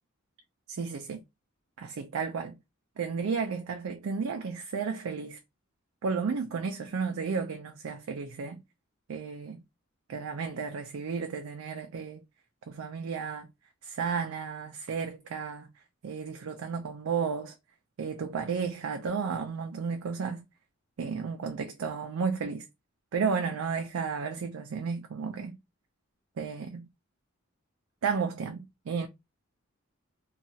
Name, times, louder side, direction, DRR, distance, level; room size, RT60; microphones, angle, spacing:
voice 1, 0.7-1.2 1.8-2.6 3.0-5.4 6.0-8.6 9.1-9.6 10.1-12.2 12.7-13.5 13.8-15.7 16.0-17.5 18.0-20.5 21.0-22.7 23.1-25.6 26.4-26.9 28.0-29.1, right 5 dB, 90° right, 0.4 m, -33 dB
2.9 x 2.3 x 2.7 m
head